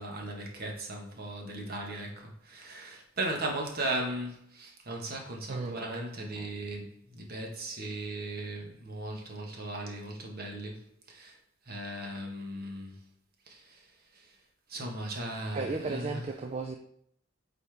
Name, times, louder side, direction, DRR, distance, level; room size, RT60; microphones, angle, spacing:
voice 1, 0.0-11.4 11.7-13.0 13.5-13.9 14.1-14.3 14.7-16.2, right 1 dB, 50° right, 1 dB, 1.4 m, -37 dB
voice 2, 15.5-16.8, right 4 dB, 30° right, 4 dB, 0.4 m, -34 dB
8.3 x 4.2 x 3.5 m, 0.69 s
head